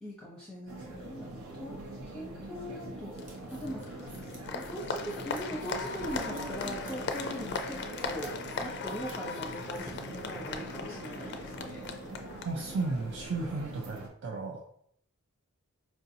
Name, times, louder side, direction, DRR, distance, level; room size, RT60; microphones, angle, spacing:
voice 1, 0.0-1.8 2.1-3.1 3.5-3.9 4.5-11.8, equal, 5° left, -6 dB, 0.7 m, -41 dB
sound 1, 0.7-14.1, right 2 dB, 75° right, 0.8 m, -43 dB
sound 2, 3.0-10.4, right 2 dB, 35° right, 0.9 m, -57 dB
Applause, 3.2-13.3, left 4 dB, 50° left, 0.4 m, -39 dB
voice 2, 12.4-14.6, right 3 dB, 55° right, 0 dB, 0.4 m, -34 dB
4.6 x 2.5 x 2.7 m, 0.69 s
head